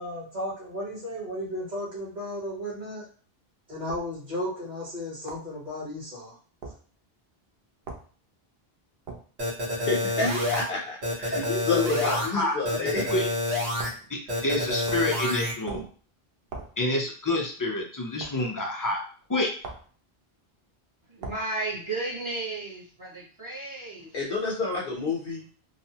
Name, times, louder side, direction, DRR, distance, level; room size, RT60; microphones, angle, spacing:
voice 1, 0.0-3.0 3.7-6.3, left 1 dB, 50° right, -7 dB, 1.3 m, -34 dB
sound 1, 3.9-4.1 5.3-5.5 6.6-6.8 7.9-8.1 9.1-9.3 10.5-10.8 12.0-12.2 13.8-14.1 14.9-15.2 15.7-16.0 16.5-16.8 18.2-18.4 19.6-19.9 21.2-21.5, right 3 dB, 65° right, 0.7 m, -40 dB
sound 2, 9.4-10.6 11.0-12.3 12.6-13.9 14.3-15.5, left 1 dB, 85° right, 1.3 m, -28 dB
voice 2, 9.8-13.1 24.1-25.5, left 3 dB, 65° left, -3 dB, 0.9 m, -29 dB
voice 3, 11.3-13.2 14.1-15.8 16.8-19.0 19.3-19.5, left 2 dB, 30° left, 0 dB, 0.4 m, -28 dB
voice 4, 21.1-24.2, right 2 dB, 30° right, -6 dB, 0.8 m, -34 dB
3.2 x 2.0 x 2.8 m, 0.42 s
omnidirectional pair, 1.0 m